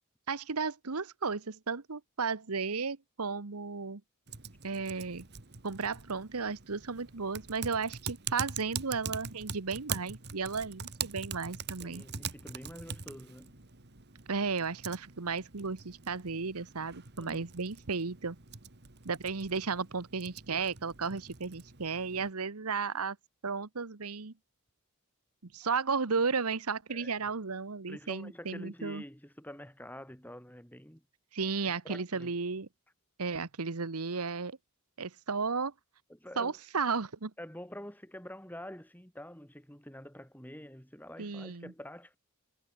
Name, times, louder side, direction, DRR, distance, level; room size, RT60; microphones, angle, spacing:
voice 1, 0.3-4.0 4.6-5.3 5.6-12.0 14.3-18.4 19.0-23.2 23.4-24.3 25.4-29.0 31.3-32.7 33.2-34.6 35.0-35.7 36.4-37.3 41.2-41.7, right 5 dB, 90° right, 1.2 m, -34 dB
Typing, 4.3-22.3, right 6 dB, 50° right, 1.8 m, -43 dB
voice 2, 11.8-13.6 17.2-17.4 26.9-27.1 27.9-31.0 31.6-32.4 36.1-36.6 37.4-42.2, left 1 dB, 10° left, 6.7 m, -47 dB
head